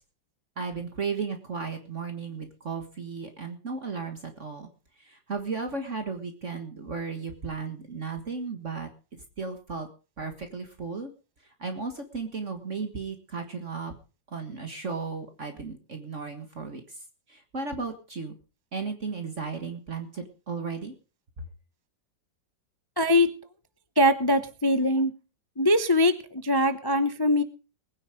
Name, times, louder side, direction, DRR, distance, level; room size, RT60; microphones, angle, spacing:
voice 1, 0.6-4.7 5.0-9.9 10.2-11.1 11.6-13.9 14.3-17.0 17.3-18.4 18.7-20.9, right 4 dB, 40° right, 6 dB, 1.9 m, -35 dB
voice 2, 23.0-23.3 24.0-25.1 25.6-27.4, left 1 dB, 40° left, 10 dB, 0.3 m, -22 dB
20.0 x 9.9 x 5.1 m, 0.35 s
omnidirectional pair, 2.1 m